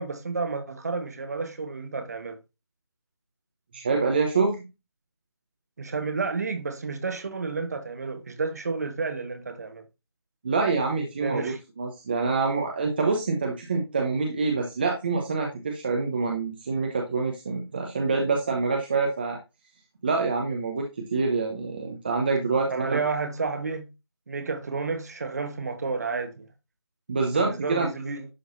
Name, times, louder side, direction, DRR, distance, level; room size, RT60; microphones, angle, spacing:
voice 1, 0.0-2.4 5.8-9.8 11.2-11.6 22.7-23.9 24.3-26.5 27.4-28.3, right 4 dB, 40° right, 1.3 m, -31 dB
voice 2, 3.7-4.6 10.4-19.4 20.0-23.0 27.1-27.9, right 4 dB, 20° right, 0.9 m, -26 dB
11.5 x 3.8 x 2.6 m
figure-of-eight pair, 170°, 14 cm